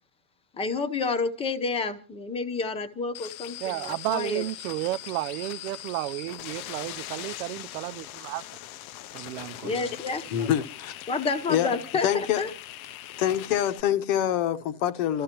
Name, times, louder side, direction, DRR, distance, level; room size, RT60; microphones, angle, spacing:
voice 1, 0.6-4.4 9.6-10.3 11.1-12.5, left 4 dB, 15° left, 0.8 m, -29 dB
sound 1, 3.1-13.8, left 14 dB, 80° left, 0.8 m, -41 dB
voice 2, 3.6-8.5 9.1-9.9 10.4-10.5, right 18 dB, 80° right, 0.6 m, -32 dB
voice 3, 10.3-11.0 11.5-11.7 12.0-12.4 13.2-15.2, left 10 dB, 65° left, 1.1 m, -25 dB
27.5 x 13.5 x 2.9 m
supercardioid pair, 170°, 42 cm